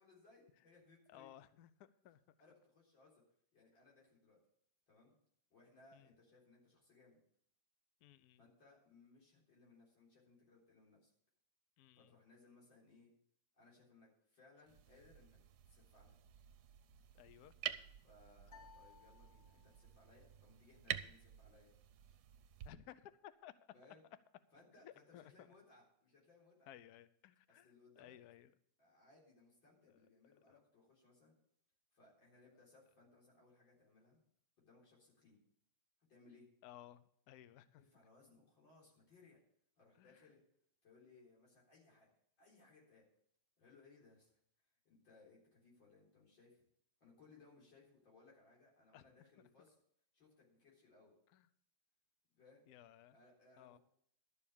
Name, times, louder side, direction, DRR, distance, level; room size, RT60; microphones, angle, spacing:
voice 1, 0.0-1.3 2.4-3.2 3.5-4.4 4.9-5.1 5.5-7.2 8.4-11.1 11.9-13.1 13.5-15.4 15.6-16.2 18.0-21.7 23.7-24.1 24.5-26.7 27.5-28.1 28.8-31.3 31.9-34.2 34.6-35.4 36.1-36.5 37.8-39.4 39.8-40.4 40.8-42.1 42.4-43.1 43.6-44.4 44.8-46.6 47.0-49.7 50.1-51.2 52.3-52.6 53.1-53.8, left 3 dB, 90° left, -4 dB, 4.6 m, -66 dB
voice 2, 1.1-2.3 5.9-6.1 8.0-8.4 11.8-12.1 17.1-17.5 22.6-23.5 24.8-25.5 26.7-27.7 28.0-28.5 29.9-30.0 30.5-30.6 36.6-37.8 40.0-40.3 48.9-49.0 51.3-51.5 52.7-53.2 53.6-53.8, left 12 dB, 65° left, 14 dB, 1.1 m, -58 dB
sound 1, 14.7-22.7, right 11 dB, 65° right, 1.1 m, -49 dB
sound 2, 18.5-20.0, left 7 dB, 40° left, 1.1 m, -62 dB
12.0 x 7.1 x 7.1 m, 0.67 s
omnidirectional pair, 2.0 m